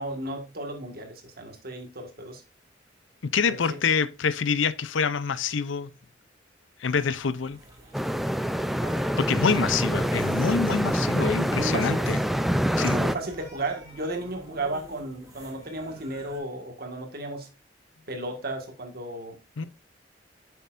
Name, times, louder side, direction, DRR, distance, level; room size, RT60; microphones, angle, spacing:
voice 1, 0.0-2.4 8.8-9.1 11.2-12.1 12.8-17.5 18.1-19.4, right 2 dB, 55° right, 1.7 m, -34 dB
voice 2, 3.2-5.9 6.8-7.6 9.2-12.2 12.8-13.0 19.6-19.7, left 6 dB, 85° left, 0.5 m, -26 dB
sound 1, 6.8-16.4, right 1 dB, 20° right, 3.5 m, -50 dB
sound 2, 7.9-13.2, equal, ahead, 0.4 m, -26 dB
8.4 x 7.0 x 2.5 m
head